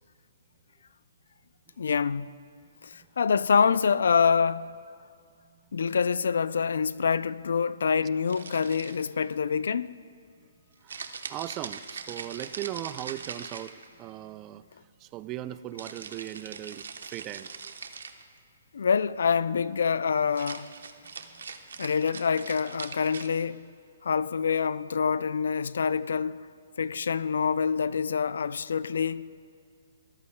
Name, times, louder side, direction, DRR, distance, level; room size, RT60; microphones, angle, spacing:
voice 1, 1.8-2.3 2.8-4.7 5.7-10.0 18.7-20.7 21.8-23.7 24.0-26.5 26.8-29.3, left 6 dB, 75° left, 0.3 m, -26 dB
voice 2, 5.4-5.8 10.8-17.7 21.0-21.5 21.7-21.9, right 13 dB, 25° right, 0.3 m, -39 dB
sound 1, 8.3-9.2 10.9-14.1 15.8-18.2 20.2-23.3, right 5 dB, 85° right, 0.9 m, -41 dB
23.5 x 13.5 x 2.2 m
hypercardioid pair, 155°, 0 cm